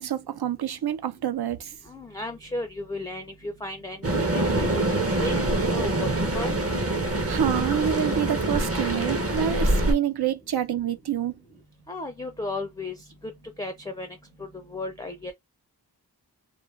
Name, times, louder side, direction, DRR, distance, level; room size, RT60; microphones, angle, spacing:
voice 1, 0.0-1.7 7.3-11.3, right 10 dB, 70° right, 0.5 m, -27 dB
voice 2, 1.9-6.1 6.3-6.5 11.9-13.0 13.2-13.3 13.6-14.2 14.5-15.3, left 2 dB, 10° left, 0.4 m, -35 dB
sound 1, 4.0-9.9, right 2 dB, 35° right, 0.7 m, -25 dB
2.5 x 2.2 x 3.1 m
wide cardioid pair, 50°, 41 cm